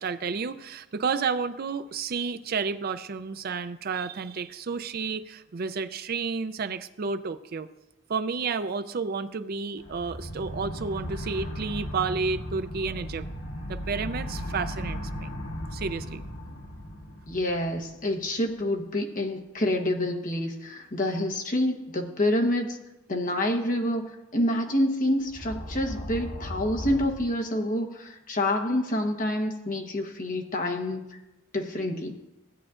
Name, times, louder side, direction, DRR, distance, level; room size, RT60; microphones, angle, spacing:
voice 1, 0.0-7.7 8.1-13.3 13.7-15.3 15.7-16.2, right 5 dB, 50° right, 11 dB, 0.4 m, -31 dB
sound 1, 9.8-18.3 25.3-27.1, equal, 75° left, 1.6 m, -36 dB
voice 2, 17.3-22.8 23.1-31.1 31.5-32.2, left 1 dB, 40° left, 2 dB, 1.1 m, -27 dB
16.5 x 8.8 x 2.5 m, 0.99 s
head